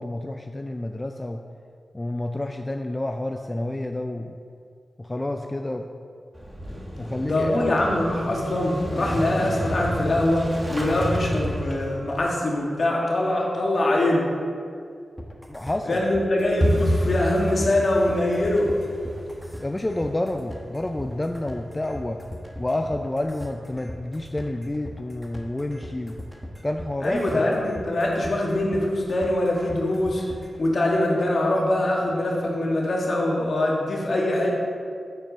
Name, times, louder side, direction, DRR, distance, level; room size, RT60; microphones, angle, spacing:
voice 1, 0.0-1.4 1.9-4.4 5.0-5.9 7.0-7.7 15.5-16.0 19.6-22.2 22.6-26.2 26.6-27.7, left 1 dB, 25° left, 5 dB, 0.4 m, -29 dB
Motorcycle / Engine starting, 6.3-12.2, equal, 25° right, 1.6 m, -31 dB
voice 2, 7.2-14.3 15.8-18.7 27.0-30.2 30.6-34.5, left 1 dB, 60° left, -2 dB, 1.6 m, -23 dB
sound 1, 15.2-30.6, left 1 dB, ahead, 1.1 m, -39 dB
sound 2, 16.6-27.3 27.6-28.3 28.5-28.8 29.1-29.5 29.8-29.9 30.4-30.9 31.2-31.3 31.8-31.9, equal, 40° right, 1.2 m, -32 dB
7.6 x 4.5 x 5.1 m, 2.2 s
cardioid pair, 45°, 0 cm